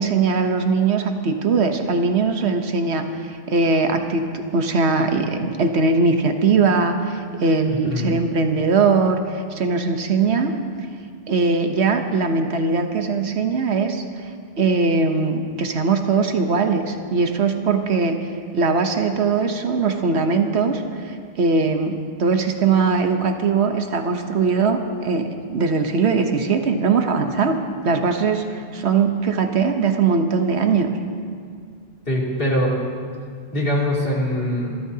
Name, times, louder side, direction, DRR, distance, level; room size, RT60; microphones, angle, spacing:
voice 1, 0.0-10.5 11.3-14.0 14.6-18.2 18.5-27.6 27.8-31.0, right 4 dB, 75° right, 6 dB, 1.2 m, -20 dB
voice 2, 7.7-8.1 32.0-32.7 33.5-34.8, equal, 55° left, -4 dB, 3.0 m, -22 dB
26.5 x 13.5 x 2.8 m, 2.1 s
omnidirectional pair, 1.1 m